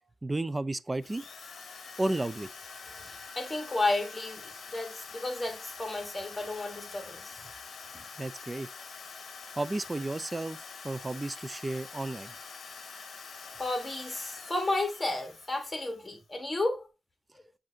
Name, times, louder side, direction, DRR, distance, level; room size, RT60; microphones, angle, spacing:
voice 1, 0.2-1.3 2.0-2.5 8.2-8.7 9.6-10.6 10.8-12.3, right 2 dB, 25° right, 0.3 m, -32 dB
Drill, 1.0-16.2, left 5 dB, 65° left, 0.8 m, -46 dB
voice 2, 2.9-7.4 13.6-16.9, left 2 dB, 25° left, 1.4 m, -32 dB
7.4 x 2.5 x 2.7 m
supercardioid pair, 50°, 0 cm